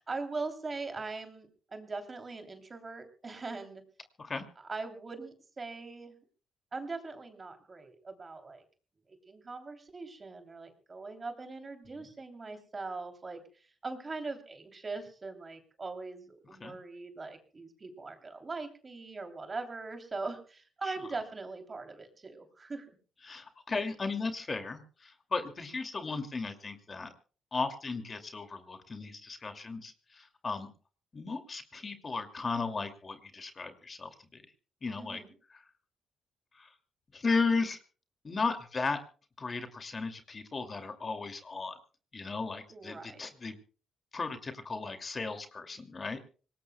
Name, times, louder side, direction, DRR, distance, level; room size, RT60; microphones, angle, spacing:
voice 1, 0.0-3.8 4.6-6.2 6.7-8.6 9.1-22.9 34.9-35.3 42.7-43.2, right 3 dB, 30° right, 6 dB, 3.0 m, -41 dB
voice 2, 23.2-27.1 27.5-30.7 31.1-34.4 34.8-35.2 35.5-35.6 36.5-36.7 37.1-37.8 38.2-39.0 39.4-41.8 42.1-43.6 44.1-46.3, left 4 dB, 35° left, 7 dB, 2.4 m, -35 dB
25.5 x 19.0 x 2.2 m, 0.38 s
cardioid pair, 90°, 0 cm